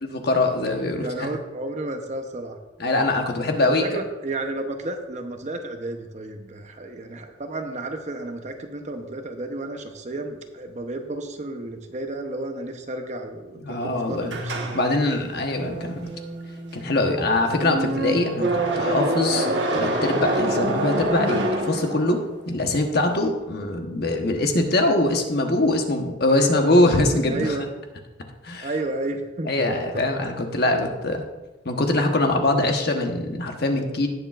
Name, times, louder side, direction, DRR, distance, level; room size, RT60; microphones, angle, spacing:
voice 1, 0.1-1.3 2.8-3.8 13.6-14.4 14.7-16.0 16.7-19.5 19.7-27.7 28.4-28.7 29.4-31.2 31.6-34.1, left 2 dB, 55° left, 3 dB, 1.2 m, -23 dB
voice 2, 0.8-2.6 3.6-14.6 26.3-26.5 27.0-27.6 28.6-30.0, right 2 dB, 40° right, 5 dB, 0.8 m, -32 dB
sound 1, 14.3-22.4, right 1 dB, 65° right, 1.4 m, -26 dB
18.0 x 6.8 x 2.5 m, 1.1 s
head